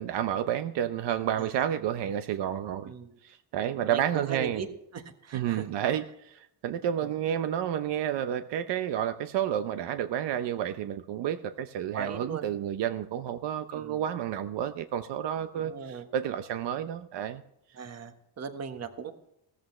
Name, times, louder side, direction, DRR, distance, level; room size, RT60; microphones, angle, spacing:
voice 1, 0.0-2.9 3.2-4.6 5.3-17.4, right 10 dB, 75° right, 9 dB, 0.9 m, -30 dB
voice 2, 2.8-3.2 3.8-4.7 4.9-5.7 7.0-7.1 11.9-12.5 13.7-14.0 15.5-16.1 17.7-19.1, right 6 dB, 35° right, 7 dB, 1.4 m, -38 dB
16.5 x 14.0 x 3.2 m, 0.78 s
cardioid pair, 155°, 43 cm